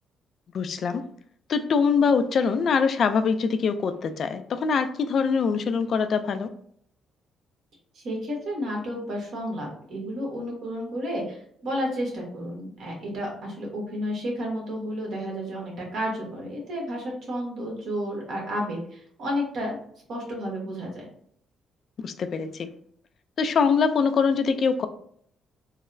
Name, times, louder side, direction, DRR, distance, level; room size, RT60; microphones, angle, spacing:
voice 1, 0.5-1.0 1.5-6.5 22.0-22.7 23.4-24.9, left 5 dB, 55° left, 10 dB, 0.3 m, -23 dB
voice 2, 7.9-19.7 20.1-21.0, equal, 70° right, -1 dB, 1.2 m, -31 dB
3.9 x 2.0 x 2.5 m, 0.64 s
cardioid pair, 90°, 0 cm